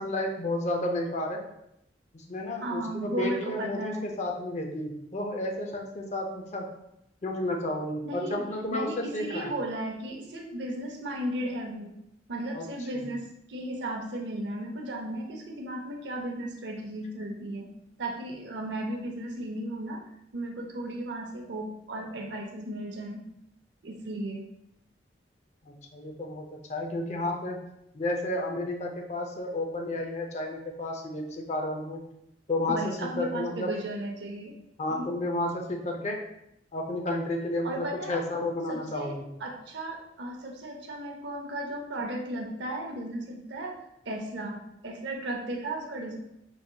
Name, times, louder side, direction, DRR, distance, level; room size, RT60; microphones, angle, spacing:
voice 1, 0.0-1.4 2.1-6.6 7.2-9.5 12.5-12.7 12.9-13.1 25.6-27.6 27.9-32.0 32.5-33.7 34.8-36.2 36.7-39.2, left 1 dB, 40° left, 2 dB, 0.5 m, -32 dB
voice 2, 2.6-4.1 8.0-8.5 8.7-11.9 12.3-17.7 18.0-20.0 20.3-23.3 23.8-24.4 32.7-34.6 34.9-35.1 37.6-38.2 38.7-43.8 44.1-46.2, right 1 dB, 70° right, 2 dB, 0.6 m, -35 dB
4.7 x 2.8 x 2.2 m, 0.81 s
head